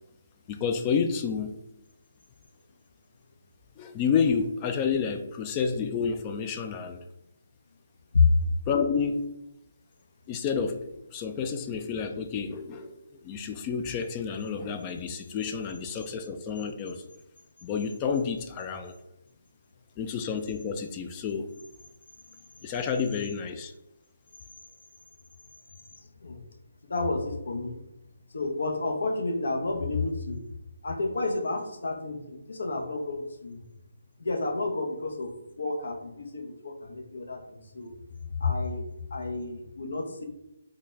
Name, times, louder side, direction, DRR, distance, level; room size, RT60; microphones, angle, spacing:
voice 1, 0.5-1.6 3.8-7.0 8.7-9.3 10.3-10.8 11.1-12.9 13.2-17.0 17.6-18.9 20.0-21.5 22.6-23.7, left 6 dB, 25° left, 7 dB, 0.3 m, -29 dB
voice 2, 26.0-26.4 26.9-27.8 28.3-30.4 30.8-33.6 34.2-37.9 38.4-38.8 39.1-40.2, left 3 dB, 70° left, 3 dB, 0.8 m, -30 dB
3.9 x 2.3 x 3.1 m, 0.89 s
figure-of-eight pair, 150°, 0 cm